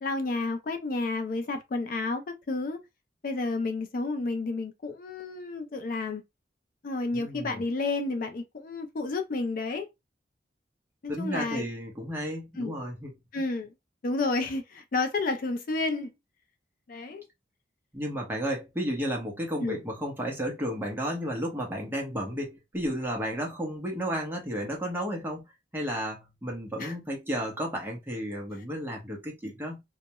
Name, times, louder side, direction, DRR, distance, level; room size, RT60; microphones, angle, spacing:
voice 1, 0.0-2.8 3.2-6.2 6.8-9.9 11.0-11.7 12.6-12.8 13.3-13.7 14.0-16.1 16.9-17.2 19.6-19.8 26.8-26.9, left 3 dB, 50° left, 0.4 m, -31 dB
voice 2, 7.1-7.6 11.1-13.1 17.9-25.5 25.7-29.8, equal, 10° right, 0.8 m, -33 dB
2.3 x 2.0 x 2.9 m
head